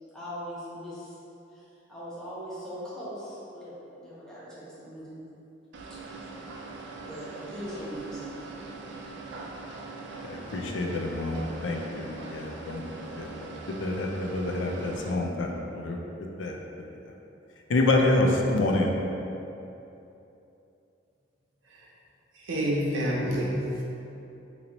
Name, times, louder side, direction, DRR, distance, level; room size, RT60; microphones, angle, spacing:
voice 1, 0.1-1.2 1.5-5.2 5.9-6.3 7.0-8.5, equal, 5° left, -10 dB, 0.9 m, -40 dB
sound 1, 5.7-15.1, right 3 dB, 65° right, 0.4 m, -41 dB
voice 2, 10.3-13.5 13.8-16.0 16.4-16.6 17.7-18.9, left 2 dB, 80° left, 1 dB, 0.4 m, -27 dB
voice 3, 22.4-23.8, equal, 85° right, -5 dB, 0.7 m, -28 dB
3.0 x 2.7 x 4.0 m, 2.9 s
head